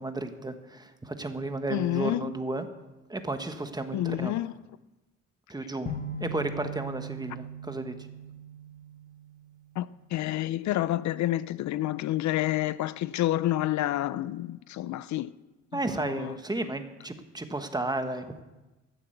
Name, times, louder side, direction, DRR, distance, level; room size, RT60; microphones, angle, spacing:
voice 1, 0.0-2.7 3.1-4.3 5.5-5.9 6.2-7.9 15.7-18.4, right 2 dB, 15° right, 1.3 m, -33 dB
voice 2, 1.7-2.3 3.9-4.5 9.8-15.3 15.7-16.3, left 14 dB, 70° left, 0.5 m, -29 dB
sound 1, 5.9-9.9, right 2 dB, 25° left, 1.5 m, -40 dB
14.0 x 7.2 x 7.9 m
cardioid pair, 90°, 30 cm